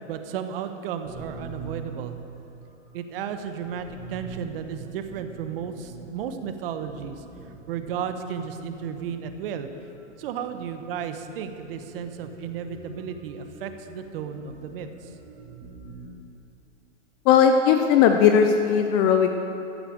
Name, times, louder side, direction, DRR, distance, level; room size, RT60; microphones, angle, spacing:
voice 1, 0.1-2.2 2.9-9.7 10.2-15.1, right 7 dB, 50° right, 8 dB, 1.1 m, -34 dB
sound 1, 1.0-16.1, right 4 dB, 15° right, 1.9 m, -45 dB
voice 2, 17.3-19.3, left 7 dB, 20° left, 6 dB, 0.4 m, -18 dB
14.0 x 8.9 x 6.7 m, 2.8 s
hypercardioid pair, 125°, 37 cm